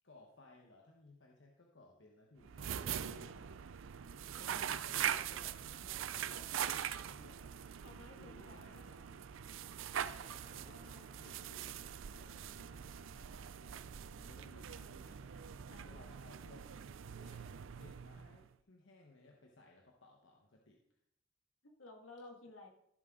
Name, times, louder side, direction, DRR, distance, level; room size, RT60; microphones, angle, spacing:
voice 1, 0.0-2.6 3.7-3.8 4.3-7.5 7.9-9.5 10.0-13.9 14.1-15.5 15.8-16.7 17.1-17.5 17.8-20.8, left 2 dB, 65° left, 0 dB, 1.2 m, -61 dB
sound 1, 2.4-18.5, right 9 dB, 80° right, 0.4 m, -43 dB
voice 2, 2.5-3.5 7.8-8.9 10.7-11.1 15.7-16.1 21.6-22.7, left 2 dB, 85° left, 1 dB, 2.1 m, -56 dB
sound 2, 10.0-12.9, right 3 dB, 35° right, 1.0 m, -64 dB
15.5 x 7.6 x 3.8 m, 0.77 s
head